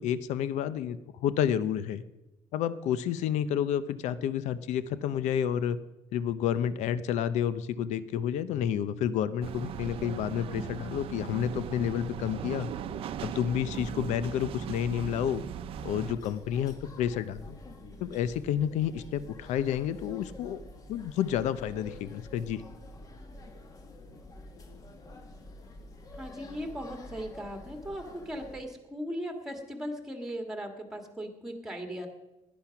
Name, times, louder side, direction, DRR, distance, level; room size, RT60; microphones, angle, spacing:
voice 1, 0.0-2.0 2.5-5.8 6.1-12.7 13.2-15.4 15.8-17.6 18.0-20.6 20.9-22.6, left 9 dB, 85° left, 15 dB, 0.7 m, -30 dB
sound 1, 9.4-16.2, right 8 dB, 55° right, 0.7 m, -38 dB
sound 2, 15.8-28.6, left 1 dB, 30° left, 1.6 m, -48 dB
voice 2, 26.1-32.1, equal, 5° right, 4 dB, 1.8 m, -38 dB
17.5 x 10.5 x 5.9 m, 1.0 s
cardioid pair, 175°, 12 cm